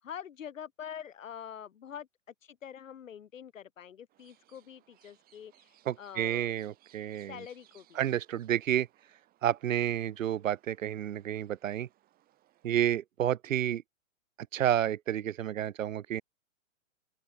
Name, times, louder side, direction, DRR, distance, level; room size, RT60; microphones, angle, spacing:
voice 1, 0.0-2.1 2.4-6.5 7.3-8.0, left 8 dB, 75° left, 6.0 m, -45 dB
sound 1, 4.1-13.0, right 14 dB, 20° right, 7.8 m, -66 dB
voice 2, 5.9-7.4 8.0-8.9 9.4-11.9 12.6-13.8 14.5-16.2, right 11 dB, 75° right, 1.0 m, -30 dB
open air
hypercardioid pair, 150°, 39 cm